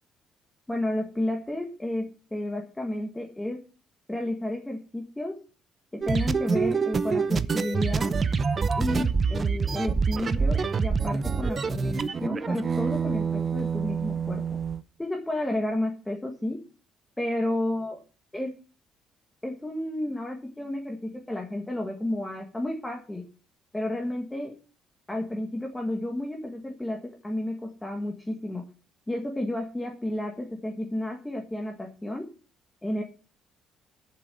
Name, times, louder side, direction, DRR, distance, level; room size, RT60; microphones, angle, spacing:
voice 1, 0.7-3.6 4.1-5.4 5.9-8.2 8.8-14.6 15.0-16.6 17.2-18.0 18.3-18.5 19.4-23.2 23.7-24.6 25.1-28.7 29.1-32.3 32.8-33.0, left 1 dB, 10° left, 2 dB, 1.6 m, -31 dB
sound 1, 6.0-14.8, right 5 dB, 25° right, 0.6 m, -26 dB
8.3 x 7.3 x 8.1 m, 0.36 s
cardioid pair, 160°, 0 cm